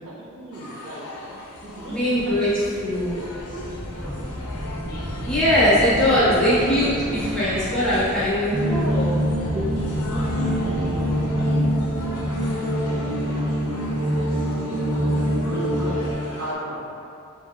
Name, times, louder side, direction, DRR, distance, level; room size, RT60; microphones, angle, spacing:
voice 1, 0.0-1.0 1.6-2.0 2.4-2.9 3.2-3.8 4.0-4.1 4.8-5.0 6.1-7.3 8.0-9.3 9.5-14.9 15.4-16.8, right 1 dB, 55° right, -7 dB, 0.5 m, -37 dB
sound 1, 0.5-16.5, left 1 dB, 85° left, 0.5 m, -40 dB
sound 2, 1.6-13.6, equal, 30° left, 0.9 m, -34 dB
voice 2, 1.9-2.5 2.8-3.2 5.2-9.1, left 1 dB, 5° left, -13 dB, 1.0 m, -21 dB
sound 3, 8.5-16.1, equal, 70° right, 1.1 m, -24 dB
3.0 x 2.7 x 2.4 m, 2.5 s
head